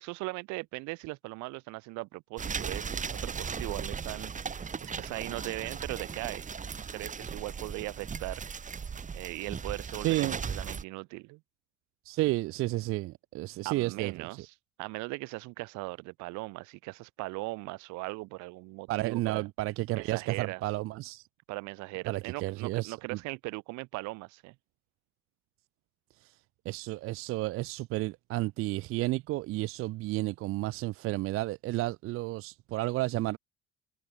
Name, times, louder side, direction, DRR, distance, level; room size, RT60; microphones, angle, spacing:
voice 1, 0.0-4.3 4.8-6.5 6.9-8.4 9.1-11.4 13.7-14.5 14.8-19.5 19.9-20.6 21.5-24.6, right 24 dB, 55° right, 1.7 m, -39 dB
sound 1, 2.4-10.8, right 6 dB, 20° right, 1.2 m, -37 dB
voice 2, 10.0-10.4 12.0-14.3 18.9-21.3 22.1-23.2 26.2-26.4 26.7-33.4, right 18 dB, 40° right, 0.5 m, -32 dB
figure-of-eight pair, 55°, 34 cm